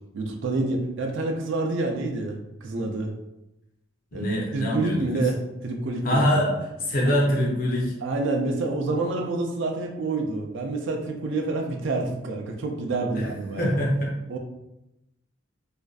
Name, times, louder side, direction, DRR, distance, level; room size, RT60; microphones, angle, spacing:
voice 1, 0.1-3.1 4.1-6.6 7.0-7.1 8.0-13.8 14.3-14.4, right 2 dB, 70° right, 3 dB, 0.4 m, -28 dB
voice 2, 4.1-5.2 6.0-6.5 6.8-7.9 13.6-14.1, equal, 45° left, -2 dB, 0.6 m, -24 dB
2.5 x 2.2 x 2.3 m, 0.90 s
head